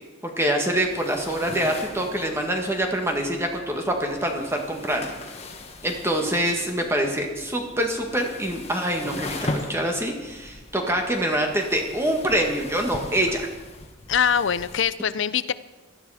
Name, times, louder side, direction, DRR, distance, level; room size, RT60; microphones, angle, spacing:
voice 1, 0.4-5.4 5.8-13.5, right 1 dB, 10° right, 2 dB, 1.7 m, -25 dB
sound 1, 0.7-14.8, left 2 dB, 30° left, 1.5 m, -39 dB
voice 2, 14.1-15.5, left 8 dB, 65° left, 16 dB, 0.5 m, -23 dB
17.5 x 13.0 x 5.0 m, 1.2 s
head